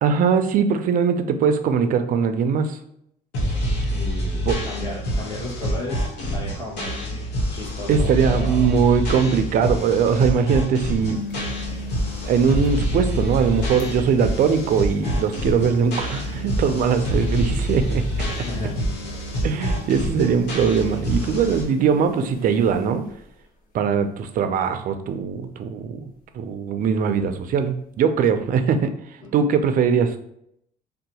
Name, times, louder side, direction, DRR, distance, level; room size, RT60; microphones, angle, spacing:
voice 1, 0.0-2.8 4.5-4.6 7.9-11.2 12.2-18.1 19.4-23.1 23.7-26.0 26.3-28.9 29.3-30.2, right 6 dB, 55° right, 9 dB, 0.4 m, -21 dB
sound 1, 3.3-21.6, equal, 80° left, 1.1 m, -26 dB
voice 2, 3.7-8.7 18.1-18.8 29.2-29.3, left 2 dB, 25° left, -3 dB, 1.1 m, -34 dB
sound 2, 9.5-9.6 9.8-9.9 10.8-23.9 24.3-24.7 25.0-25.1 26.9-27.0, left 2 dB, 60° left, 0.9 m, -40 dB
2.7 x 2.2 x 4.1 m, 0.74 s
cardioid pair, 110°, 17 cm